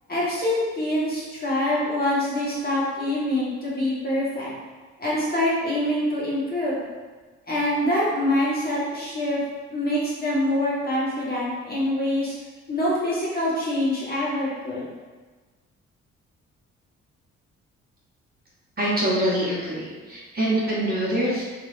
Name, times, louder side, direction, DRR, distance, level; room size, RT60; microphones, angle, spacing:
voice 1, 0.1-4.5 5.0-6.9 7.5-9.4 9.7-12.3 12.7-14.9, left 1 dB, 25° left, -7 dB, 1.4 m, -25 dB
voice 2, 18.8-21.4, right 1 dB, 25° right, -7 dB, 1.1 m, -24 dB
3.3 x 2.7 x 2.6 m, 1.4 s
hypercardioid pair, 45°, 35 cm